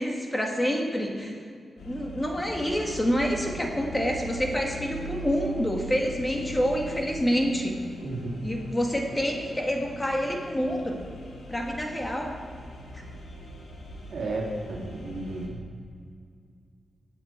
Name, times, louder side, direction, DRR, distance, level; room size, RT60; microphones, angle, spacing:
voice 1, 0.0-1.3 1.8-7.7 8.4-11.0 11.5-12.4, equal, 15° left, 1 dB, 1.9 m, -27 dB
sound 1, 1.8-15.5, right 1 dB, 75° left, 2.5 m, -41 dB
voice 2, 8.0-8.4 14.1-15.6, right 2 dB, 70° right, -2 dB, 2.6 m, -33 dB
17.5 x 7.4 x 4.5 m, 2.2 s
cardioid pair, 75°, 0 cm